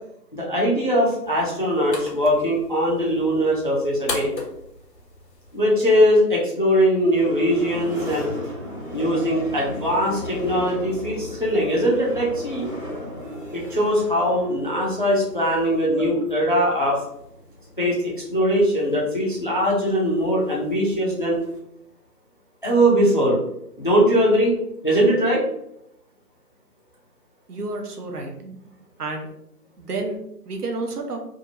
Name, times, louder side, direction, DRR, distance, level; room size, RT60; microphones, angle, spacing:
voice 1, 0.3-4.3 5.5-8.3 8.9-12.7 13.5-17.0 17.8-21.4 22.6-23.4 23.8-24.5 24.8-25.4, equal, 35° left, -4 dB, 0.5 m, -21 dB
sound 1, 1.2-6.3, left 2 dB, 90° left, 1.0 m, -37 dB
sound 2, 6.7-21.6, equal, 35° right, 0.7 m, -37 dB
voice 2, 27.5-28.6 29.0-29.3 29.8-31.2, right 3 dB, 70° right, 3 dB, 0.7 m, -30 dB
2.8 x 2.4 x 2.7 m, 0.79 s
figure-of-eight pair, 165°, 49 cm